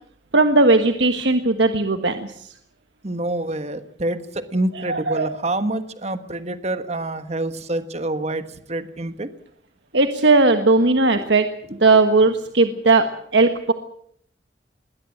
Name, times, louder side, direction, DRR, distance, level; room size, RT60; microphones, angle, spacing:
voice 1, 0.3-2.5 4.7-5.3 9.9-11.5 11.8-13.1 13.3-13.7, right 3 dB, 70° right, 7 dB, 1.4 m, -17 dB
voice 2, 3.0-9.3 11.2-11.3, right 1 dB, 35° right, 10 dB, 1.4 m, -27 dB
21.5 x 17.0 x 8.7 m, 0.67 s
head